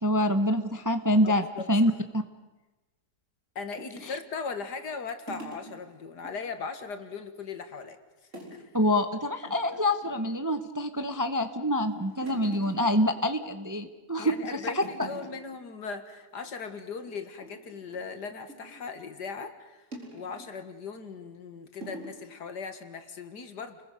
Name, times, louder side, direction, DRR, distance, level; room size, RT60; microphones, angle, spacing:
voice 1, 0.0-2.2 8.7-15.1, equal, 15° right, 8 dB, 0.8 m, -26 dB
voice 2, 1.2-1.7 3.6-8.0 8.5-8.7 14.2-19.9 20.1-23.8, left 5 dB, 70° left, 8 dB, 2.3 m, -38 dB
sound 1, 3.8-6.3 6.7-6.8 7.1-7.8 8.3-8.7 9.0-9.1 9.4-10.3 10.8-11.3 11.7-13.8 14.2-14.5 14.7-15.6 15.9-16.1 16.4-16.6 17.1-18.9 19.9-20.6 21.2-21.3 21.8-22.2, right 2 dB, 45° right, 4.7 m, -46 dB
30.0 x 21.0 x 6.6 m, 1.1 s
omnidirectional pair, 1.8 m